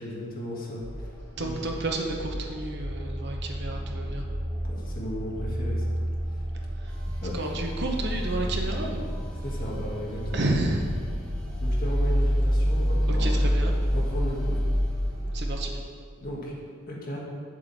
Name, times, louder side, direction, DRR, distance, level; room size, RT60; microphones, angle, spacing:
voice 1, 0.0-1.7 4.7-5.9 6.3-6.4 7.2-7.5 9.4-10.5 11.6-13.4 13.9-14.6 16.2-16.5 16.9-17.2, equal, 40° left, -4 dB, 1.7 m, -35 dB
sound 1, 0.8-15.5, equal, 20° left, 1.9 m, -28 dB
voice 2, 1.4-4.2 7.3-9.1 10.3-10.9 13.1-13.7 15.2-15.7, right 2 dB, 50° right, 2 dB, 0.9 m, -30 dB
sound 2, 6.9-15.1, equal, 5° left, 1.1 m, -47 dB
8.2 x 7.6 x 4.1 m, 2.1 s
head